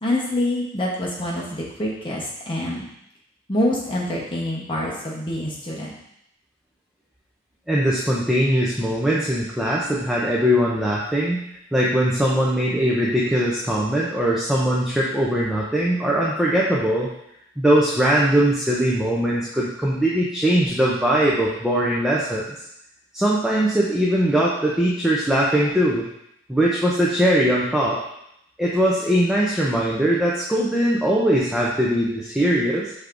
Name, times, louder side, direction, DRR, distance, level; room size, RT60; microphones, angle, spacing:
voice 1, 0.0-2.8 3.5-6.0, left 1 dB, 25° left, -4 dB, 0.9 m, -26 dB
voice 2, 7.7-11.4 11.7-17.1 17.6-22.6 23.1-26.1 26.5-28.0 28.6-32.9, right 1 dB, 5° right, -6 dB, 0.5 m, -21 dB
6.2 x 3.4 x 2.5 m, 0.77 s
head